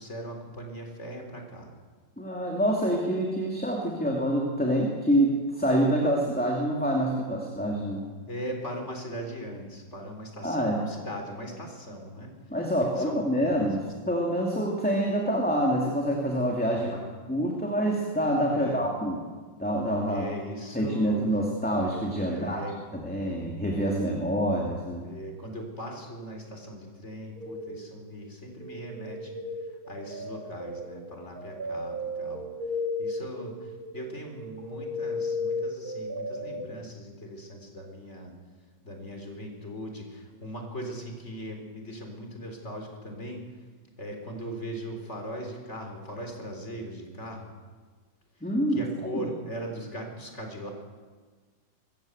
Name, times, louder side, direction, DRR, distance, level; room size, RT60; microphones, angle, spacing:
voice 1, 0.0-1.7 8.3-12.3 13.0-13.9 16.7-17.1 18.5-18.9 20.1-21.3 22.3-22.8 25.0-29.4 29.9-32.5 33.0-38.3 38.8-43.5 44.0-47.5 48.7-50.7, equal, 35° left, 3 dB, 4.1 m, -39 dB
voice 2, 2.2-8.1 10.4-10.8 12.5-17.0 17.3-19.2 19.6-20.2 20.7-22.6 22.9-25.0 48.4-48.8, equal, 5° left, -1 dB, 2.4 m, -26 dB
sound 1, 27.4-28.1 28.6-36.7, left 2 dB, 50° right, 2.4 m, -35 dB
24.5 x 15.0 x 8.0 m, 1.4 s
omnidirectional pair, 2.1 m